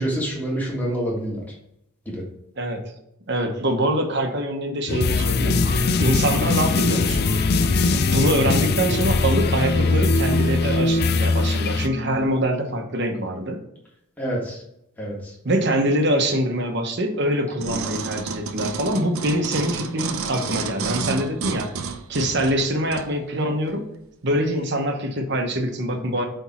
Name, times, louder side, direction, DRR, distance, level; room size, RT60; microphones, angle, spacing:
voice 1, 0.0-1.4 2.0-2.2 14.2-14.6 15.0-15.1, right 1 dB, 10° left, -3 dB, 1.7 m, -26 dB
voice 2, 2.6-2.9 3.3-5.6 6.0-7.3 8.1-13.6 15.4-21.7 22.1-23.8 24.2-26.3, right 1 dB, 50° right, 4 dB, 1.0 m, -24 dB
sound 1, 4.9-11.9, left 3 dB, 45° left, 0.4 m, -21 dB
sound 2, 5.1-12.3, left 2 dB, 30° left, 2.3 m, -35 dB
sound 3, 17.6-23.1 23.7-23.8, right 5 dB, 75° right, 0.7 m, -30 dB
8.1 x 3.5 x 4.3 m, 0.79 s
head